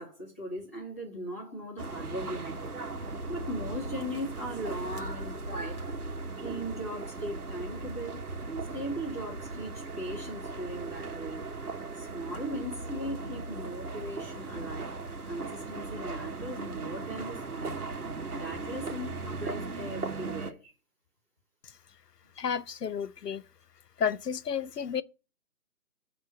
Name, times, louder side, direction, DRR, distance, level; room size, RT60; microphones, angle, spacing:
voice 1, 0.0-2.7 3.3-5.8 6.4-8.2 8.7-11.4 11.9-14.9 15.3-17.7 18.3-20.7, equal, 10° left, 1.5 m, -38 dB
sound 1, 1.8-20.5, right 3 dB, 70° right, 1.6 m, -38 dB
voice 2, 22.4-23.4 24.0-25.0, left 7 dB, 85° left, 0.8 m, -31 dB
10.5 x 3.7 x 7.1 m
hypercardioid pair, 180°, 47 cm